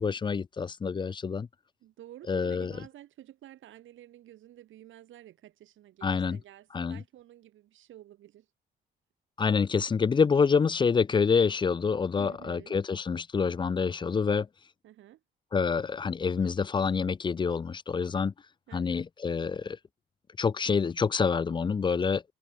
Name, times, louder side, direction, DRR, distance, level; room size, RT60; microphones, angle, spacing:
voice 1, 0.0-1.5 2.3-2.7 6.0-6.4 6.7-7.0 9.4-14.5 15.5-18.3 18.7-19.8 20.4-22.2, left 5 dB, 25° left, 0.4 m, -27 dB
voice 2, 1.8-8.5 12.2-12.7 14.8-15.2 18.7-19.0, right 13 dB, 75° right, 2.3 m, -51 dB
cardioid pair, 90°, 20 cm